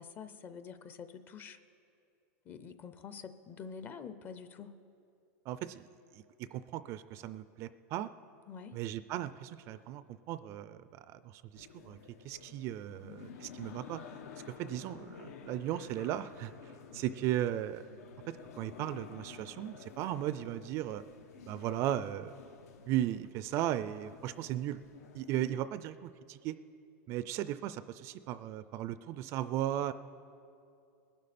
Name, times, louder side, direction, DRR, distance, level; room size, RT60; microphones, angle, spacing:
voice 1, 0.0-1.6 2.4-4.8 8.5-8.8 13.0-13.4, left 6 dB, 25° left, 12 dB, 0.5 m, -47 dB
voice 2, 5.5-5.8 6.1-8.1 8.7-12.0 12.2-14.0 14.4-16.5 16.9-17.8 18.3-21.0 21.5-22.3 22.9-24.8 25.1-26.5 27.1-29.9, right 12 dB, 35° right, 14 dB, 0.4 m, -36 dB
sound 1, 11.6-25.5, left 6 dB, 85° left, 1.1 m, -52 dB
20.5 x 11.5 x 4.2 m, 2.6 s
supercardioid pair, 155°, 8 cm